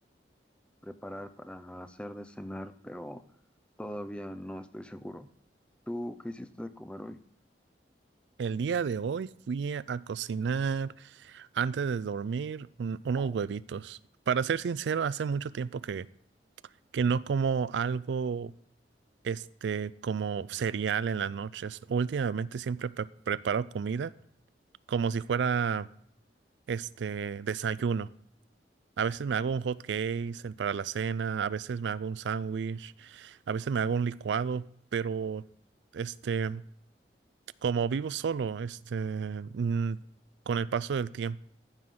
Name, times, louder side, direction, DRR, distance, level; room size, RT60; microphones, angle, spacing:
voice 1, 0.8-3.2 3.8-5.3 5.9-7.2 13.2-13.4, equal, 5° left, 10 dB, 0.5 m, -40 dB
voice 2, 8.4-14.0 14.3-16.1 16.9-18.5 19.2-24.1 24.9-25.9 26.7-28.1 29.0-34.6 34.9-35.4 35.9-36.6 37.6-40.0 40.5-41.4, right 6 dB, 90° right, 18 dB, 0.4 m, -31 dB
14.5 x 6.0 x 3.7 m, 0.68 s
head